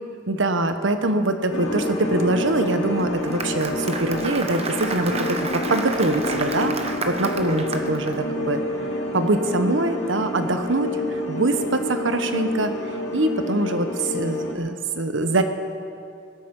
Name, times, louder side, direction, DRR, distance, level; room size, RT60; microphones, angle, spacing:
voice 1, 0.3-8.6 9.1-12.7 13.1-15.4, right 2 dB, 70° right, 8 dB, 1.1 m, -23 dB
sound 1, 1.5-14.5, left 1 dB, 75° left, 2.4 m, -28 dB
Applause, 3.0-8.1, right 3 dB, 35° right, 1.1 m, -31 dB
18.5 x 13.0 x 5.4 m, 2.5 s
head